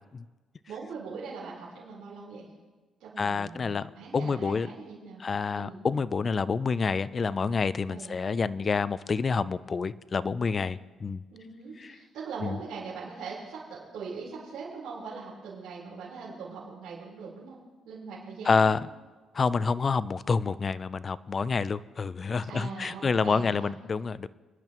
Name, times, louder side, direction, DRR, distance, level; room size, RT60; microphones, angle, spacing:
voice 1, 0.7-2.5 3.0-5.2 5.5-5.8 7.9-8.2 11.3-18.8 22.5-23.7, right 5 dB, 80° right, -9 dB, 4.2 m, -41 dB
voice 2, 3.2-4.7 5.2-11.2 11.8-11.9 12.4-12.6 18.5-18.9 19.3-24.3, left 5 dB, 40° left, 17 dB, 0.5 m, -28 dB
25.0 x 11.0 x 3.1 m, 1.3 s
cardioid pair, 90°, 0 cm